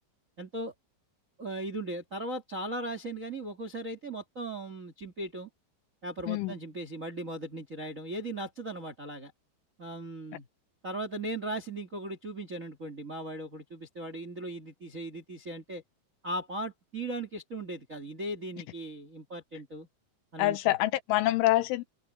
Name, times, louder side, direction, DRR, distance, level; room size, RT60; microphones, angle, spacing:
voice 1, 0.4-0.7 1.4-5.5 6.0-9.3 9.8-10.5 10.8-15.8 16.2-19.9 20.3-20.8, right 1 dB, 45° right, 1.0 m, -38 dB
voice 2, 20.4-21.8, left 16 dB, 90° left, 3.3 m, -26 dB
open air
omnidirectional pair, 5.4 m